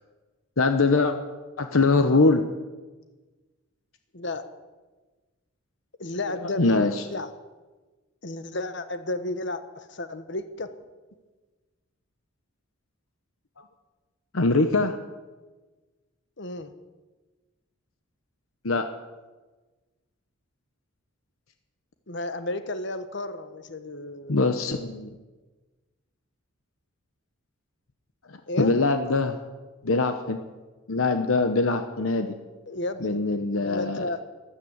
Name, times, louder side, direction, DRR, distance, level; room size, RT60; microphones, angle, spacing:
voice 1, 0.6-1.1 1.6-2.4 6.6-7.0 14.3-14.9 18.6-18.8 24.3-25.1 28.6-29.4 29.8-30.4 30.9-32.3 33.0-34.0, left 3 dB, 90° left, 7 dB, 1.0 m, -22 dB
voice 2, 4.1-4.5 6.0-7.3 8.2-10.8 16.4-16.7 22.1-24.4 28.5-28.8 32.7-33.2 33.6-34.2, left 2 dB, 60° left, 11 dB, 1.2 m, -33 dB
13.5 x 13.0 x 8.1 m, 1.3 s
head